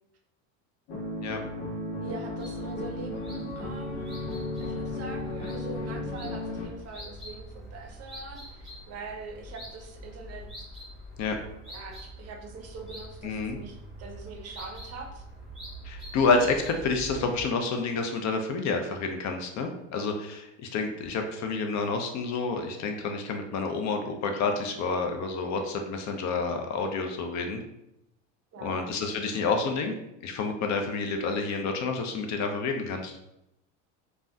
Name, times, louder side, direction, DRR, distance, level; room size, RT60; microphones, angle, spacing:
sound 1, 0.9-6.7, left 2 dB, 80° left, 0.9 m, -34 dB
voice 1, 2.0-10.5 11.7-15.2 28.5-29.6, right 4 dB, 40° right, 3 dB, 0.6 m, -43 dB
sound 2, 2.4-17.5, right 1 dB, ahead, 1.1 m, -45 dB
voice 2, 13.2-13.6 15.8-27.6 28.6-29.9 30.2-33.1, left 4 dB, 45° left, 4 dB, 0.5 m, -29 dB
3.3 x 2.2 x 2.6 m, 0.85 s
supercardioid pair, 95°, 39 cm